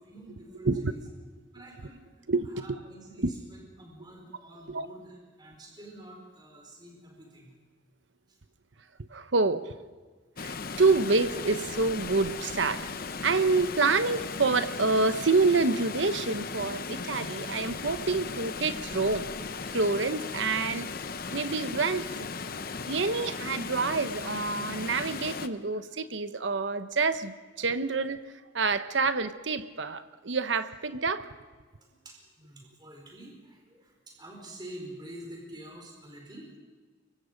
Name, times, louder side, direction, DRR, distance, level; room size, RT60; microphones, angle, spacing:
voice 1, 0.1-1.0 1.5-2.0 2.4-7.5 8.3-8.4 8.8-8.9 9.1-9.3 31.8-36.5, right 1 dB, 20° right, 0 dB, 4.6 m, -48 dB
voice 2, 2.3-2.8 3.2-3.3 4.7-4.9 9.1-9.6 10.4-12.9 13.2-19.3 19.7-20.9 21.3-22.0 22.8-28.2 28.5-31.2, right 3 dB, 75° right, 11 dB, 1.0 m, -27 dB
Water, 10.4-25.5, left 4 dB, 50° left, 0.9 m, -37 dB
24.0 x 23.5 x 5.2 m, 1.4 s
head